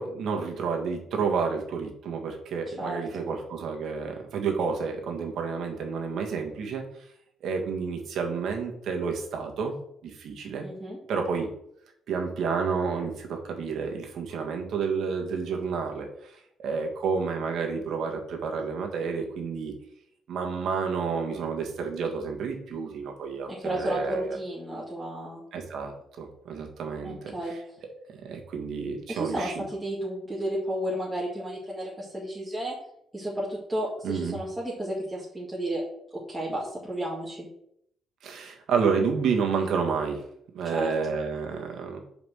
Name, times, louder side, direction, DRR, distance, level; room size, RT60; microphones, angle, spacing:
voice 1, 0.0-6.8 7.4-9.7 10.0-10.7 11.1-11.5 12.1-19.7 20.3-24.4 25.5-27.6 28.2-29.6 34.0-34.4 38.2-40.2 40.5-42.0, right 5 dB, 70° right, 2 dB, 1.7 m, -30 dB
voice 2, 2.8-3.3 10.6-11.0 23.5-25.4 27.0-27.5 29.1-32.7 33.1-35.8 36.1-37.5 40.6-40.9, right 1 dB, 10° right, -7 dB, 2.2 m, -32 dB
5.6 x 4.9 x 6.4 m, 0.72 s
cardioid pair, 90°, 0 cm